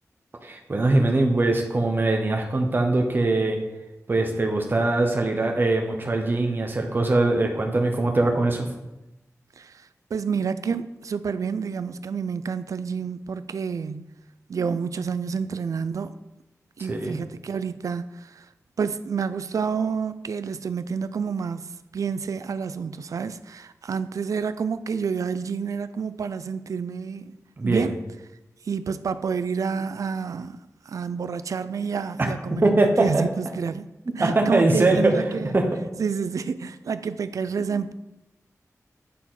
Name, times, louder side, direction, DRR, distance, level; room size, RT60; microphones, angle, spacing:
voice 1, 0.4-3.6 4.1-8.7 16.9-17.2 27.6-27.9 32.2-32.3 32.6-33.2 34.2-35.1 35.5-35.6, right 2 dB, 35° right, 0.9 m, -22 dB
voice 2, 9.6-14.1 14.5-16.2 16.8-18.5 18.8-27.3 27.6-28.0 28.6-30.6 30.9-35.5 36.0-37.9, right 6 dB, 70° right, 0.3 m, -29 dB
8.2 x 4.3 x 3.8 m
wide cardioid pair, 110°, 6 cm